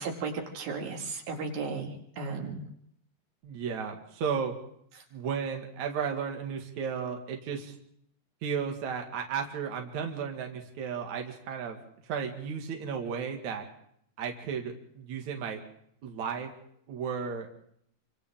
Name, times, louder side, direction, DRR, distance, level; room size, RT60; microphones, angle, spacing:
voice 1, 0.0-2.7, right 4 dB, 85° right, 2 dB, 4.0 m, -35 dB
voice 2, 3.4-4.5 5.1-7.7 8.4-11.8 12.1-13.7 14.2-15.6 16.0-16.5 16.9-17.5, right 6 dB, 60° right, 2 dB, 3.1 m, -34 dB
27.5 x 25.0 x 3.7 m, 0.69 s
omnidirectional pair, 4.1 m